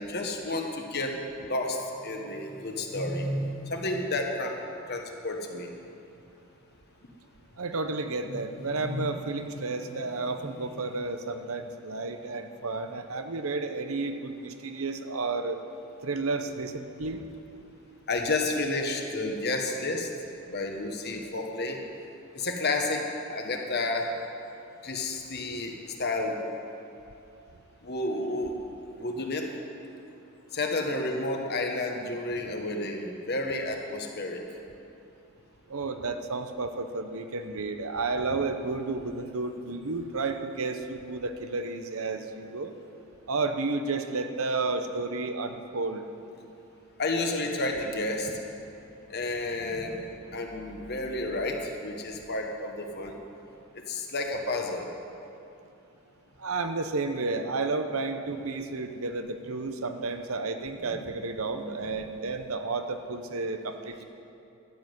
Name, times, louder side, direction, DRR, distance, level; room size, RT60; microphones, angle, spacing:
voice 1, 0.0-4.6 4.9-5.7 8.3-8.4 8.7-9.1 9.5-9.8 10.3-10.4 18.1-20.1 20.5-21.8 22.3-24.1 24.8-26.4 27.8-28.6 28.9-29.5 30.5-34.4 47.0-48.3 49.1-53.2 53.9-54.9 60.8-61.1 61.5-61.7, left 2 dB, 50° left, 2 dB, 1.4 m, -31 dB
voice 2, 7.6-15.6 16.0-17.2 35.7-42.7 43.3-46.0 56.4-64.0, right 3 dB, 70° right, 7 dB, 0.9 m, -32 dB
12.5 x 7.5 x 9.4 m, 2.8 s
head